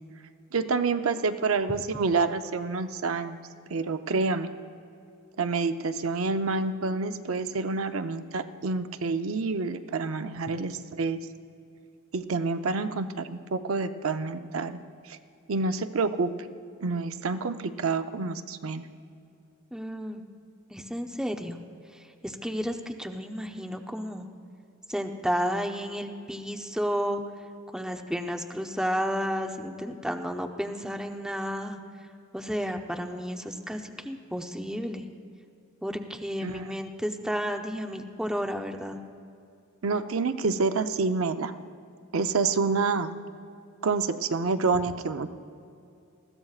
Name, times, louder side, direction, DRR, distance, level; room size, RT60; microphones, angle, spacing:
voice 1, 0.5-3.4 3.7-4.5 5.4-11.2 12.1-15.2 15.5-16.3 16.8-18.8 36.4-36.8 39.8-41.5 42.1-43.1 43.8-45.3, right 4 dB, 70° right, 9 dB, 0.6 m, -28 dB
voice 2, 19.7-20.2 20.7-21.6 22.2-24.3 24.9-27.2 27.7-31.8 32.3-35.1 35.8-39.0, equal, 5° right, 4 dB, 0.6 m, -32 dB
20.5 x 15.0 x 2.4 m, 2.5 s
head